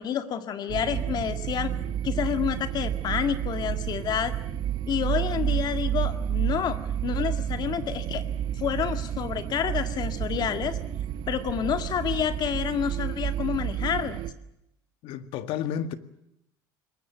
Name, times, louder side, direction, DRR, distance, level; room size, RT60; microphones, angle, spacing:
voice 1, 0.0-1.7 2.0-4.3 4.9-8.2 8.6-10.8 11.3-14.2, left 8 dB, 45° left, 1.9 m, -29 dB
sound 1, 0.7-14.3, right 10 dB, 50° right, 1.9 m, -30 dB
voice 2, 15.0-15.9, left 9 dB, 65° left, 1.8 m, -31 dB
22.0 x 20.0 x 9.2 m
supercardioid pair, 105°, 10 cm